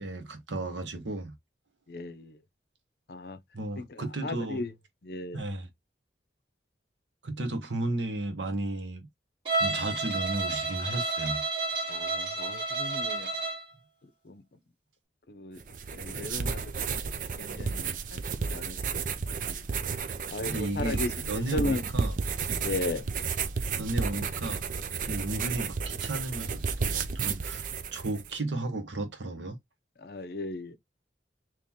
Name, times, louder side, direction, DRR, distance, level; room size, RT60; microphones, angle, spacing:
voice 1, 0.0-1.3 3.5-4.6 5.3-5.7 7.2-9.1 9.5-11.4 20.5-21.0 21.3-22.2 22.5-22.7 23.8-24.6 25.0-27.6 27.9-29.6, right 2 dB, 90° right, 1.0 m, -34 dB
voice 2, 1.9-2.4 3.1-3.4 3.8-4.7 5.0-5.4 11.9-13.3 14.0-14.4 15.3-15.6 15.9-18.8 19.5-19.8 20.3-21.9 22.6-23.0 30.0-30.8, left 2 dB, 55° left, 0.6 m, -36 dB
Bowed string instrument, 9.4-13.7, right 3 dB, 30° right, 1.4 m, -31 dB
sound 1, 15.6-28.3, right 5 dB, 45° right, 0.4 m, -32 dB
3.6 x 3.0 x 2.8 m
head